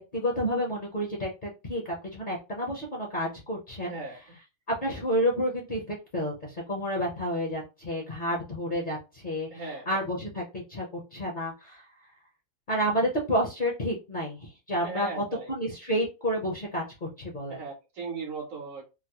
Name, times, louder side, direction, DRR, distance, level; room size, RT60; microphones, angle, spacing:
voice 1, 0.0-1.8 2.1-4.0 4.8-11.8 12.7-17.6, equal, 40° left, 0.8 m, -30 dB
voice 2, 3.8-4.2 9.5-10.0 14.8-15.5 17.5-18.9, right 4 dB, 65° right, 1.1 m, -37 dB
3.8 x 2.0 x 2.9 m
omnidirectional pair, 1.5 m